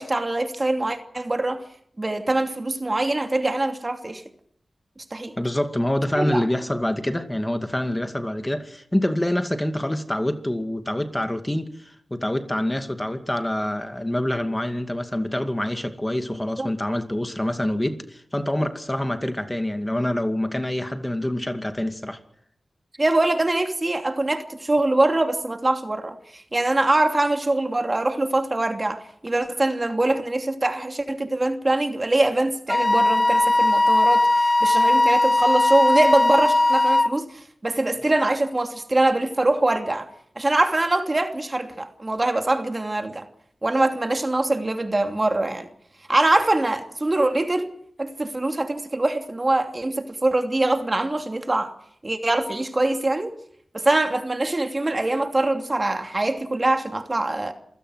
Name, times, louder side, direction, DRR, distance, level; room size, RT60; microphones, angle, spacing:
voice 1, 0.0-1.6 2.0-4.2 5.1-5.3 6.1-6.4 16.6-16.7 23.0-37.3 37.6-40.1 40.4-43.3 43.6-45.7 46.1-47.7 48.0-51.7 52.0-53.3 53.7-57.5, right 2 dB, 35° right, 2.7 m, -23 dB
voice 2, 5.4-22.2, left 1 dB, 15° left, 2.3 m, -26 dB
Wind instrument woodwind instrument, 32.7-37.2, left 2 dB, 35° left, 1.4 m, -18 dB
27.0 x 17.0 x 6.4 m
cardioid pair, 50°, 0 cm